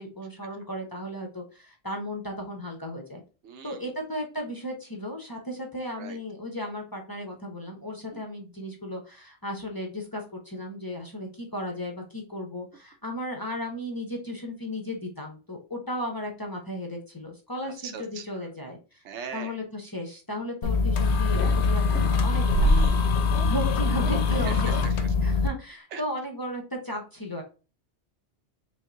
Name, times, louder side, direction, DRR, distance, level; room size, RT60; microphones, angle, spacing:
voice 1, 0.0-3.2 3.6-19.0 19.3-23.2 23.5-24.9 25.2-27.4, equal, 20° left, 1 dB, 0.7 m, -35 dB
voice 2, 3.4-3.8 6.0-6.2 17.8-18.2 19.0-19.5 22.5-23.0 24.5-24.9 25.9-26.0, right 6 dB, 85° right, 7 dB, 1.0 m, -39 dB
sound 1, 20.6-25.5, left 3 dB, 75° left, 0.9 m, -23 dB
5.6 x 2.5 x 2.5 m, 0.34 s
omnidirectional pair, 1.1 m